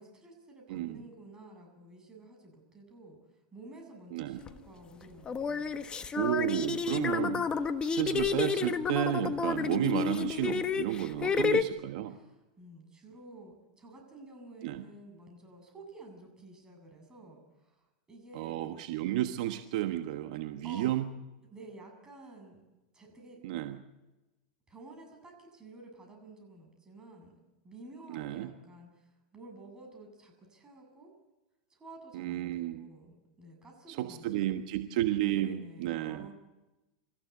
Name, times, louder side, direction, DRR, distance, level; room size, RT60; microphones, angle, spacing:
voice 1, 0.0-3.2 3.5-5.8 11.3-11.6 12.1-17.8 18.1-18.6 20.6-20.9 21.5-22.6 22.9-23.4 24.7-27.4 27.6-29.1 29.3-31.1 31.7-34.5 35.2-36.3, right 2 dB, 15° right, 2 dB, 7.8 m, -51 dB
voice 2, 0.7-1.0 4.1-4.4 6.1-7.5 7.8-12.2 14.6-14.8 18.3-21.1 23.4-23.8 28.1-28.5 32.1-32.9 33.9-36.3, right 13 dB, 65° right, 7 dB, 1.3 m, -32 dB
sound 1, 4.5-4.6 5.3-11.6, left 6 dB, 20° left, 1.3 m, -30 dB
26.0 x 15.0 x 8.2 m, 1.0 s
hypercardioid pair, 120°, 4 cm